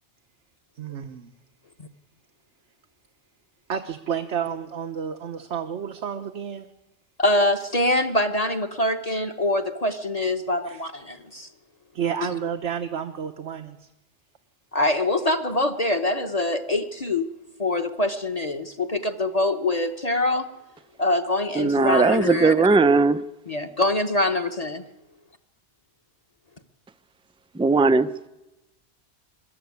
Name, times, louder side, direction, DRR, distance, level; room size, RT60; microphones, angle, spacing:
voice 1, 0.8-1.3 3.7-6.7 10.6-10.8 11.9-13.9, right 8 dB, 85° right, 6 dB, 1.3 m, -30 dB
voice 2, 7.2-11.5 14.7-17.3 17.6-20.5 21.0-22.7 23.5-24.8, left 1 dB, 35° left, 5 dB, 1.1 m, -24 dB
voice 3, 21.6-23.2 27.6-28.1, right 3 dB, 10° right, 12 dB, 0.4 m, -18 dB
22.0 x 13.5 x 9.5 m, 0.99 s
omnidirectional pair, 1.2 m